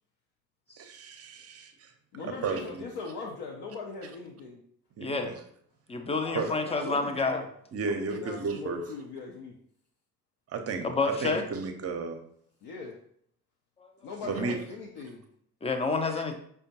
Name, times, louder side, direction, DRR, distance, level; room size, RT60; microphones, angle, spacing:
voice 1, 0.8-1.9 2.2-2.8 5.0-5.3 6.3-6.5 7.7-8.8 10.5-10.9 11.2-12.2 14.3-14.6, right 5 dB, 35° right, 6 dB, 0.6 m, -33 dB
voice 2, 2.1-4.6 6.2-7.5 7.8-9.5 12.6-13.0 14.0-15.3, left 4 dB, 65° left, -1 dB, 0.7 m, -40 dB
voice 3, 5.0-5.3 5.9-7.4 10.8-11.4 15.6-16.4, left 3 dB, 15° left, 6 dB, 0.5 m, -28 dB
5.0 x 2.3 x 2.7 m, 0.64 s
hypercardioid pair, 55°, 44 cm